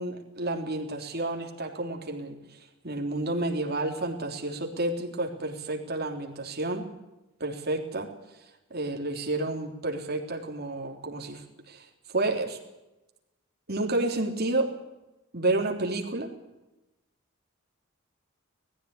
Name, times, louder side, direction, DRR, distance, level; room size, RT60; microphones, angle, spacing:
voice 1, 0.0-2.6 2.8-6.8 7.4-8.1 8.7-11.9 12.1-12.6 13.7-14.7 15.3-16.3, right 2 dB, 45° right, 2 dB, 3.5 m, -30 dB
19.0 x 15.0 x 9.7 m, 0.99 s
head